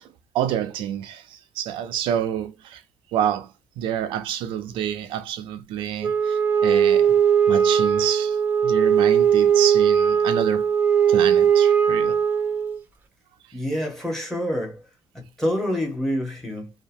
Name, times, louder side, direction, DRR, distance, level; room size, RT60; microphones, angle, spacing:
voice 1, 0.3-2.8 3.1-3.5 3.8-7.2 7.5-8.4 8.6-10.7 11.1-12.2, right 10 dB, 85° right, 0.4 m, -28 dB
Wind instrument woodwind instrument, 6.0-12.8, right 8 dB, 20° right, 0.5 m, -19 dB
voice 2, 13.5-14.8 15.1-16.7, equal, 5° left, 0.8 m, -27 dB
2.8 x 2.1 x 2.5 m
cardioid pair, 170°, 9 cm